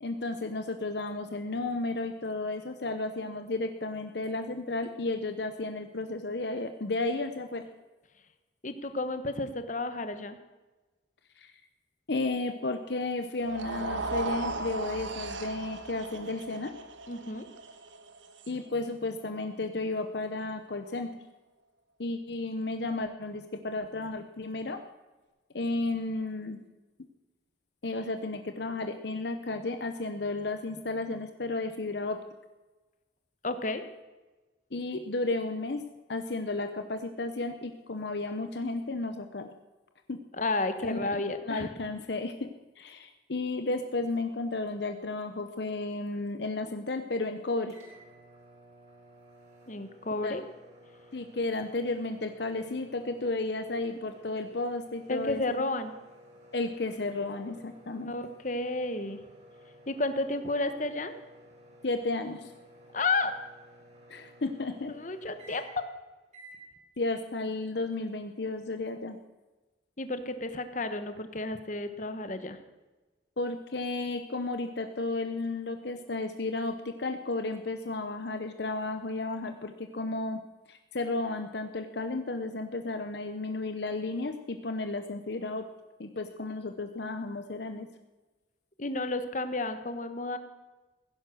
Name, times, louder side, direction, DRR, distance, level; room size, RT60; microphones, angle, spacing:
voice 1, 0.0-7.7 11.4-11.5 12.1-16.7 18.5-21.1 22.0-24.8 25.5-26.6 27.8-32.2 34.7-35.8 36.1-39.5 40.1-40.2 40.8-42.5 42.8-47.7 50.2-50.3 51.1-55.6 56.5-58.1 61.8-62.5 64.1-64.9 67.0-69.2 73.4-80.4 80.7-85.6 86.0-87.9, left 2 dB, 60° left, 7 dB, 0.8 m, -33 dB
voice 2, 8.6-10.4 17.1-17.5 33.4-33.8 40.4-41.7 49.7-50.4 55.1-55.9 58.0-59.2 59.9-61.1 62.9-63.3 64.9-65.8 70.0-72.6 88.8-90.4, left 2 dB, 40° left, 9 dB, 1.1 m, -32 dB
sound 1, 13.4-19.7, right 3 dB, 80° right, 1.3 m, -37 dB
sound 2, 47.7-65.9 66.3-66.6, equal, 35° right, 4.1 m, -55 dB
16.5 x 10.5 x 6.4 m, 1.2 s
head